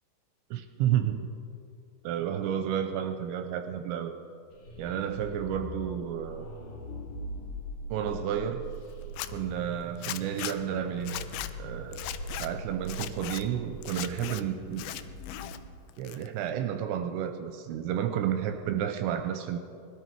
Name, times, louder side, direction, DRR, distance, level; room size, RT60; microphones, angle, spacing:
voice 1, 0.5-1.2 2.0-4.1 4.8-6.5 7.9-8.6 9.3-11.2 11.6-14.8 16.0-19.6, right 9 dB, 85° right, 7 dB, 2.8 m, -31 dB
sound 1, 4.5-15.6, right 1 dB, 45° left, 3.1 m, -42 dB
Zipper (clothing), 9.0-9.3 10.0-10.6 11.0-11.5 11.9-12.5 12.9-13.4 13.8-14.4 14.7-15.6 15.9-16.5, left 14 dB, 85° left, 2.4 m, -38 dB
21.0 x 13.0 x 4.6 m, 2.4 s
omnidirectional pair, 5.6 m